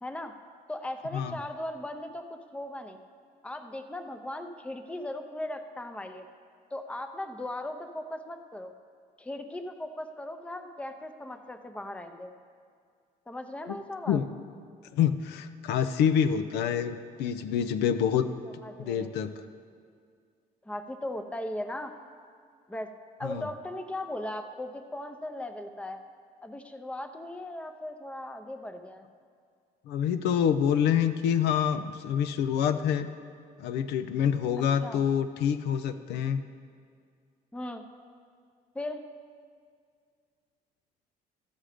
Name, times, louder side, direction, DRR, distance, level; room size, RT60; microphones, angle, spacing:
voice 1, 0.0-0.4 0.7-3.0 3.4-6.2 6.7-8.7 9.2-12.3 13.3-14.2 18.6-19.1 20.6-21.9 22.7-22.9 23.2-26.0 26.4-29.1 34.8-35.0 37.5-37.8 38.7-39.0, left 1 dB, 5° left, 7 dB, 0.6 m, -38 dB
voice 2, 14.9-18.3 18.8-19.3 23.2-23.4 29.9-33.1 33.6-36.4, left 8 dB, 85° left, 10 dB, 0.5 m, -26 dB
13.0 x 6.4 x 5.0 m, 2.1 s
cardioid pair, 110°, 17 cm